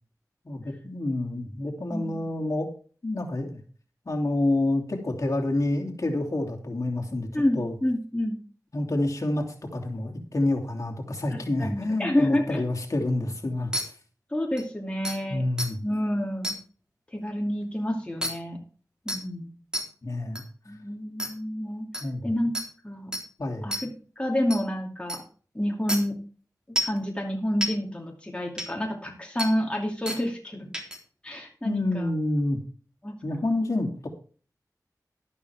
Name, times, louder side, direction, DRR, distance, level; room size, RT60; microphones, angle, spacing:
voice 1, 0.4-2.7 3.0-3.6 4.1-7.3 7.5-7.7 8.7-9.5 9.7-13.7 15.3-15.8 20.0-20.4 22.0-22.3 23.4-23.7 31.6-32.6 33.2-34.1, left 2 dB, 55° left, 0 dB, 2.9 m, -28 dB
voice 2, 1.9-2.3 7.3-8.4 11.3-12.6 14.3-15.4 15.8-16.6 17.1-18.6 19.1-19.5 20.7-21.9 22.2-22.5 22.8-23.2 23.6-23.9 24.2-25.2 25.5-26.2 26.8-30.7 31.2-32.1 33.0-33.2, left 1 dB, 15° left, 1 dB, 2.5 m, -29 dB
sound 1, 13.7-13.8 14.6-14.7 15.0-15.2 15.6-15.7 16.4-16.6 18.2-18.3 19.1-19.2 19.7-19.8 20.3-20.4 21.2-21.3 21.9-22.0 22.5-22.7 23.1-23.2 23.7-23.8 24.5-24.6 25.1-25.2 25.9-26.0 26.8-27.0 27.6-27.7 28.6-28.7 29.4-29.5 30.1-30.2 30.7-31.0, equal, 10° right, 3.5 m, -29 dB
12.0 x 11.5 x 3.5 m, 0.40 s
wide cardioid pair, 75°, 7 cm